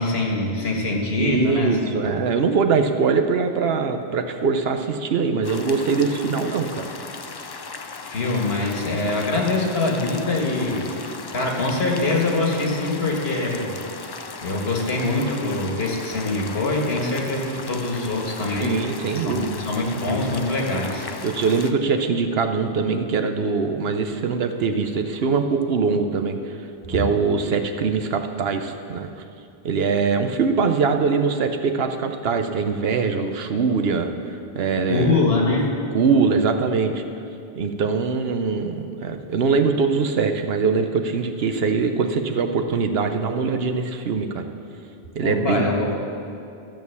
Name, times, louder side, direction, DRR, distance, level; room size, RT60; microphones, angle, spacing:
voice 1, 0.0-2.2 8.1-10.8 11.3-13.7 14.4-18.8 19.2-21.1 26.9-27.0 34.8-35.7 45.2-45.9, left 2 dB, 75° left, 0 dB, 1.8 m, -24 dB
voice 2, 1.2-6.8 18.6-19.6 21.2-26.5 26.9-29.1 29.6-34.1 34.5-35.1 35.9-37.0 37.6-44.5 45.1-45.9, right 5 dB, 70° right, 6 dB, 1.0 m, -22 dB
sound 1, 5.4-21.7, left 4 dB, 40° left, 0.3 m, -37 dB
13.5 x 6.4 x 7.0 m, 2.6 s
omnidirectional pair, 1.1 m